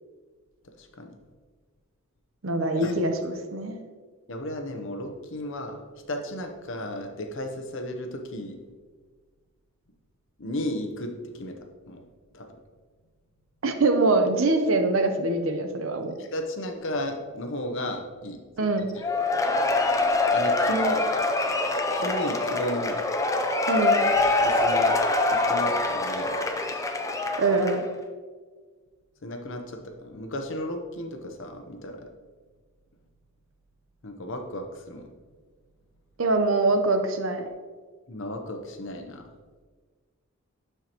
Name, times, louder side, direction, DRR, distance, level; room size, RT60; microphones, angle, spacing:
voice 1, 0.8-1.1 2.7-3.0 4.3-5.8 6.1-8.6 10.4-11.6 11.9-12.1 12.3-12.5 16.2-18.4 18.8-18.9 20.3-21.1 21.9-23.1 24.4-24.9 25.3-26.4 29.2-32.1 34.0-35.1 38.1-39.3, left 1 dB, 60° left, 5 dB, 0.8 m, -34 dB
voice 2, 2.4-3.8 13.6-16.1 18.6-18.9 23.7-24.0 27.4-27.8 36.2-37.5, right 2 dB, 65° right, 7 dB, 0.8 m, -24 dB
Cheering / Applause / Crowd, 19.0-27.9, left 2 dB, 15° left, 0.5 m, -24 dB
11.5 x 4.5 x 3.0 m, 1.5 s
head